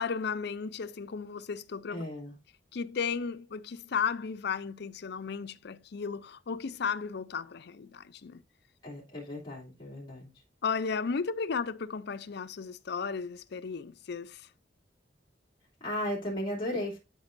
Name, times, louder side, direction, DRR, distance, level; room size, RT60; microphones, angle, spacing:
voice 1, 0.0-2.0 2.7-8.4 10.6-14.5, left 5 dB, 60° left, 0.5 m, -34 dB
voice 2, 1.9-2.3 8.8-10.3 15.8-17.0, left 1 dB, 25° left, 3.0 m, -35 dB
12.0 x 5.3 x 2.6 m
head